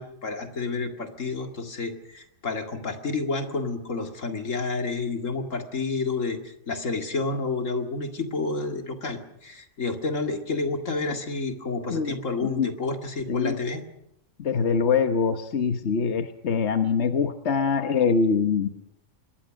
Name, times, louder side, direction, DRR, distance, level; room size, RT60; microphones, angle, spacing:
voice 1, 0.0-13.8, left 3 dB, 85° left, 5 dB, 2.6 m, -30 dB
voice 2, 14.4-18.7, left 5 dB, 60° left, 7 dB, 1.4 m, -24 dB
26.0 x 21.5 x 6.4 m, 0.79 s
omnidirectional pair, 1.3 m